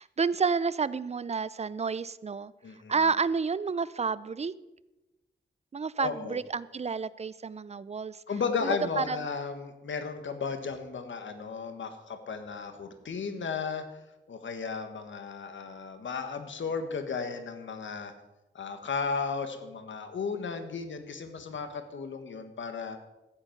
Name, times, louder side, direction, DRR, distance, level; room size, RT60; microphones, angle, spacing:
voice 1, 0.0-2.5 2.9-4.5 5.7-8.2 8.6-9.2, right 5 dB, 35° right, 18 dB, 0.4 m, -30 dB
voice 2, 2.6-2.9 6.0-6.4 8.3-13.9 14.3-18.1 18.5-23.0, left 5 dB, 75° left, 8 dB, 1.4 m, -34 dB
14.0 x 8.0 x 5.9 m, 1.0 s
wide cardioid pair, 95°, 20 cm